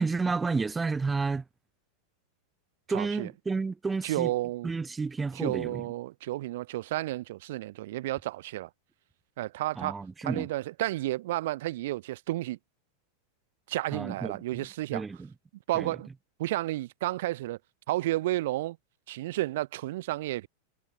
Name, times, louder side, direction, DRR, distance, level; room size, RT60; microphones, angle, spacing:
voice 1, 0.0-1.4 2.9-4.3 4.6-5.8 9.8-10.5 13.9-14.7 14.9-15.2 15.7-15.9, right 4 dB, 10° right, 0.8 m, -31 dB
voice 2, 2.9-3.3 4.0-4.7 5.3-8.7 9.4-12.6 13.7-15.0 15.7-16.1 16.4-17.6 17.9-18.8 19.1-20.5, right 16 dB, 55° right, 0.5 m, -31 dB
figure-of-eight pair, 90°, 0 cm